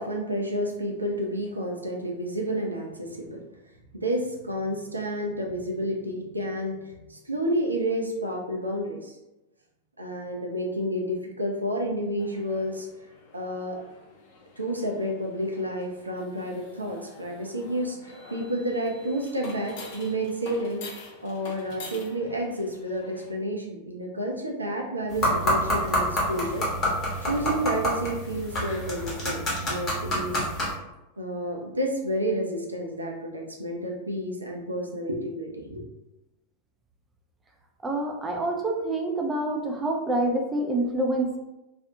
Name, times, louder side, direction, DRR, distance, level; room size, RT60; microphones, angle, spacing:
voice 1, 0.0-3.4 3.9-9.2 10.0-12.9 13.3-13.8 14.6-20.8 21.2-26.7 27.2-30.4 31.2-35.8, equal, 80° right, 0 dB, 0.4 m, -30 dB
sound 1, 12.2-23.3, left 3 dB, 50° left, 0.4 m, -47 dB
sound 2, 25.1-30.7, equal, 30° left, 0.9 m, -27 dB
voice 2, 37.8-41.4, right 1 dB, 15° right, 1 dB, 0.4 m, -27 dB
2.5 x 2.0 x 2.6 m, 0.98 s
figure-of-eight pair, 90°, 0 cm